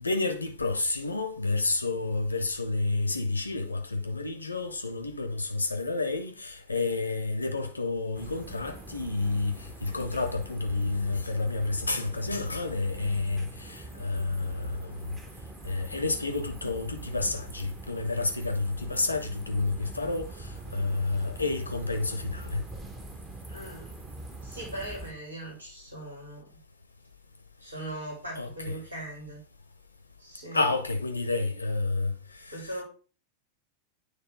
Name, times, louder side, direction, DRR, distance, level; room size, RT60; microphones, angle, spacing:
voice 1, 0.0-15.0 15.6-22.6 28.4-28.8 30.5-32.1 32.4-32.8, left 3 dB, 80° left, 0.6 m, -30 dB
sound 1, 8.1-25.1, right 2 dB, 20° right, 1.0 m, -44 dB
voice 2, 23.5-23.9 24.4-26.5 27.6-29.4 30.2-30.6 32.5-32.8, right 1 dB, 80° right, 2.6 m, -40 dB
9.1 x 3.3 x 3.6 m
figure-of-eight pair, 90°, 0 cm